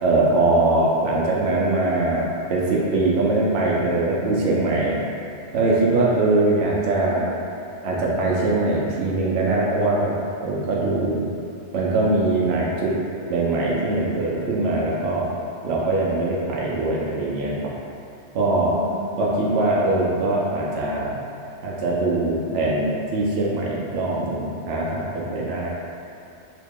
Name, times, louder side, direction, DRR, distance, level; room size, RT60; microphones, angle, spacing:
voice 1, 0.0-5.0 5.5-7.2 7.8-10.1 10.4-11.2 11.7-13.0 13.3-15.3 15.6-17.5 18.3-18.7 19.2-21.1 21.6-22.9 23.1-25.7, right 2 dB, 70° right, -4 dB, 0.8 m, -22 dB
voice 2, 6.5-7.4 18.7-19.9, right 1 dB, 40° right, -7 dB, 0.5 m, -36 dB
3.0 x 2.8 x 3.5 m, 2.5 s
omnidirectional pair, 1.2 m